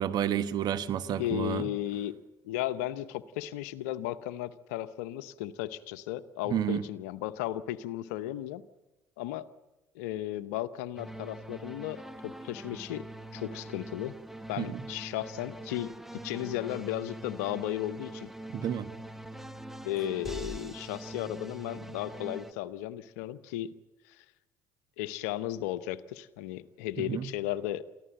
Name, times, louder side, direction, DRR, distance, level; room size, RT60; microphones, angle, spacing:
voice 1, 0.0-1.7 6.5-6.8 14.6-14.8 18.5-18.9 27.0-27.3, right 10 dB, 55° right, 12 dB, 1.2 m, -30 dB
voice 2, 1.1-2.2 2.4-8.6 9.2-9.5 9.9-14.2 14.5-18.3 19.8-23.7 24.1-24.2 25.0-27.8, left 13 dB, 75° left, 14 dB, 0.8 m, -35 dB
sound 1, 11.0-22.5, right 1 dB, 5° right, 1.2 m, -43 dB
24.0 x 15.0 x 9.0 m, 1.1 s
hypercardioid pair, 60°, 8 cm